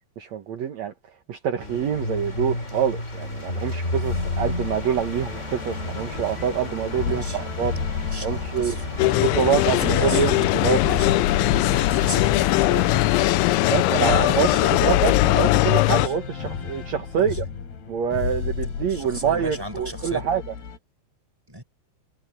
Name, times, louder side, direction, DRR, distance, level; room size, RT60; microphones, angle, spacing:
voice 1, 0.2-0.9 1.3-7.9 8.2-8.7 9.2-10.8 13.7-17.4 17.9-20.4, right 8 dB, 70° right, 1.7 m, -26 dB
sound 1, 1.6-14.7, left 2 dB, 15° left, 3.2 m, -32 dB
sound 2, 4.0-20.8, left 6 dB, 60° left, 5.4 m, -33 dB
voice 2, 7.0-7.4 7.7-9.5 9.8-10.2 10.8-11.1 11.7-13.0 13.6-15.2 15.8-16.1 17.1-17.4 18.9-20.2 21.5-21.6, right 1 dB, 5° right, 5.0 m, -36 dB
sound 3, 9.0-16.1, left 20 dB, 85° left, 3.0 m, -20 dB
omnidirectional pair, 5.2 m